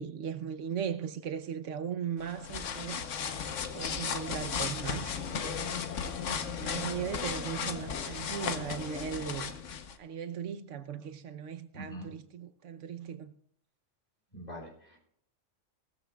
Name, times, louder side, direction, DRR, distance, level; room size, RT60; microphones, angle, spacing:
voice 1, 0.0-3.1 3.7-5.6 6.3-9.5 10.0-13.3, right 8 dB, 80° right, 1.1 m, -38 dB
sound 1, 2.2-10.0, left 6 dB, 80° left, 1.3 m, -35 dB
voice 2, 11.7-12.1 14.3-15.0, equal, 35° left, 3.5 m, -43 dB
18.0 x 13.5 x 2.3 m
omnidirectional pair, 1.3 m